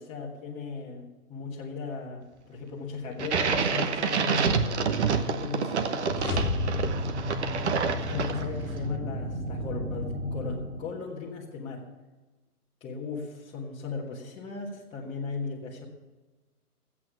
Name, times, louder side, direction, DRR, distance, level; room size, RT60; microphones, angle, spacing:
voice 1, 0.0-4.4 4.9-6.8 8.0-11.9 12.8-15.9, left 4 dB, 10° left, -5 dB, 1.4 m, -37 dB
sound 1, 3.2-8.7, right 6 dB, 45° right, 1.1 m, -28 dB
sound 2, 6.1-8.3, left 3 dB, 60° left, 1.6 m, -33 dB
sound 3, 6.1-11.1, equal, 60° right, 3.6 m, -34 dB
14.0 x 8.7 x 6.0 m, 1.2 s
figure-of-eight pair, 130°, 46 cm